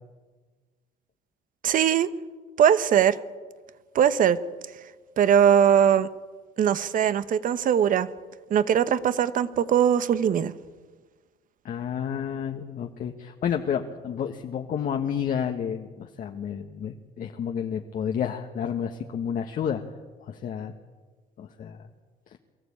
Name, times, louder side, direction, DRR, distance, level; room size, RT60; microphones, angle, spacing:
voice 1, 1.6-2.1 2.6-3.2 3.9-4.4 5.2-6.1 6.6-8.1 8.5-10.5, right 9 dB, 55° right, 15 dB, 1.1 m, -20 dB
voice 2, 11.6-19.8 20.2-20.7 21.4-21.9, left 8 dB, 55° left, 4 dB, 1.3 m, -30 dB
23.5 x 14.0 x 8.7 m, 1.4 s
cardioid pair, 110°, 17 cm